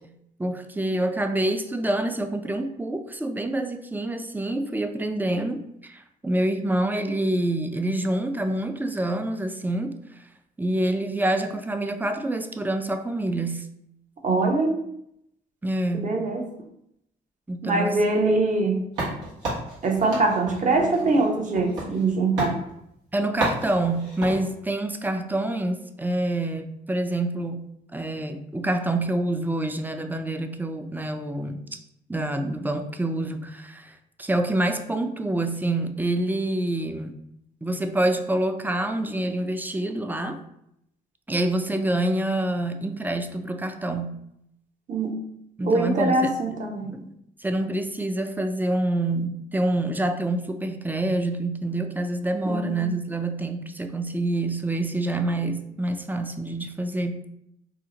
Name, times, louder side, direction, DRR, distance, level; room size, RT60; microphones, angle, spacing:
voice 1, 0.4-9.9 10.6-13.7 15.6-16.2 17.5-17.9 23.1-31.7 32.1-37.2 37.6-40.4 41.3-44.2 45.6-46.6 46.9-47.1 47.4-57.3, right 1 dB, 10° right, 7 dB, 0.4 m, -27 dB
voice 2, 14.2-14.8 15.9-16.5 17.6-18.9 19.8-22.6 44.9-45.2 45.6-47.0 52.4-52.7, right 3 dB, 45° right, 2 dB, 0.7 m, -23 dB
sound 1, 19.0-22.1 22.4-22.6 23.4-24.4, right 1 dB, 90° right, 1.0 m, -31 dB
2.8 x 2.0 x 3.7 m, 0.78 s
supercardioid pair, 65°, 19 cm